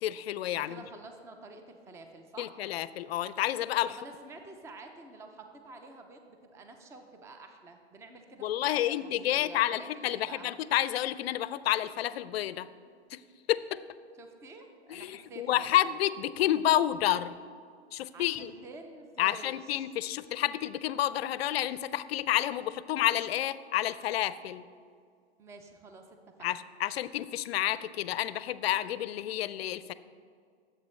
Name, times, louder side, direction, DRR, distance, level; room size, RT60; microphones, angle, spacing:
voice 1, 0.0-0.8 2.4-3.9 8.4-12.7 13.1-13.2 13.5-13.8 14.9-17.4 17.9-18.5 19.2-24.6 26.4-29.9, left 12 dB, 70° left, 16 dB, 0.5 m, -30 dB
voice 2, 0.6-2.6 3.9-10.5 14.2-15.7 18.0-19.8 25.4-26.7, right 3 dB, 10° right, 5 dB, 0.5 m, -49 dB
11.5 x 7.8 x 3.2 m, 2.2 s
hypercardioid pair, 125°, 33 cm